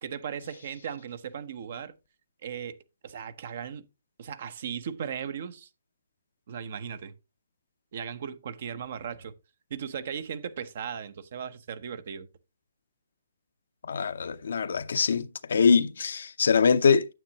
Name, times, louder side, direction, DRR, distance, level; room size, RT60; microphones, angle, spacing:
voice 1, 0.0-1.9 2.4-2.8 3.0-3.9 4.2-5.7 6.5-7.1 7.9-9.3 9.7-12.3, right 7 dB, 55° right, 0.8 m, -37 dB
voice 2, 13.8-17.1, left 5 dB, 65° left, 0.6 m, -23 dB
9.2 x 7.5 x 2.9 m
figure-of-eight pair, 135°, 0 cm